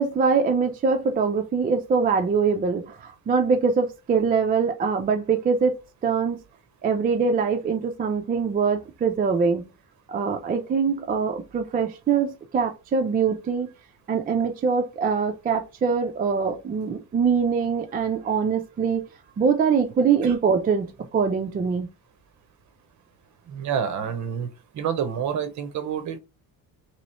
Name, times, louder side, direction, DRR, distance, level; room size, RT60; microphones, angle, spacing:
voice 1, 0.0-6.4 6.8-9.6 10.1-13.7 14.1-19.0 19.4-21.9, right 5 dB, 25° right, 0.4 m, -23 dB
voice 2, 23.5-24.5 24.7-26.2, right 8 dB, 50° right, 0.8 m, -28 dB
3.1 x 3.0 x 4.1 m
cardioid pair, 160°, 37 cm